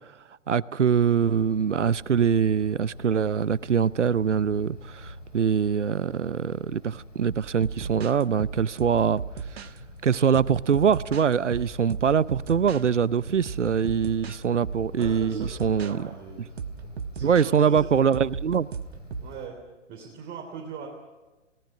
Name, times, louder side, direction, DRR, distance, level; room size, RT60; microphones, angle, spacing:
voice 1, 0.5-9.2 10.0-16.1 17.2-18.7, right 7 dB, 75° right, 0.7 m, -23 dB
Wind, 1.1-19.5, left 1 dB, 85° left, 3.5 m, -46 dB
sound 1, 7.3-9.8 10.3-12.8 13.3-15.9 16.6-19.3, right 6 dB, 60° right, 1.3 m, -36 dB
voice 2, 15.0-17.9 19.2-19.6 19.9-20.9, right 6 dB, 25° right, 3.4 m, -41 dB
30.0 x 18.5 x 6.1 m
figure-of-eight pair, 115°, 36 cm